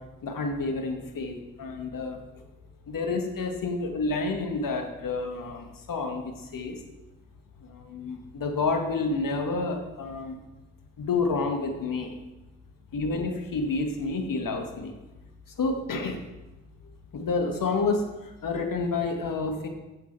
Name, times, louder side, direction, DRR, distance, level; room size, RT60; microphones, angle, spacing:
voice 1, 0.2-2.4 2.9-6.8 7.6-10.4 11.0-12.1 12.9-14.9 15.6-16.2 17.1-19.7, left 3 dB, 50° left, 4 dB, 1.8 m, -29 dB
8.9 x 7.3 x 4.7 m, 1.1 s
hypercardioid pair, 40°, 42 cm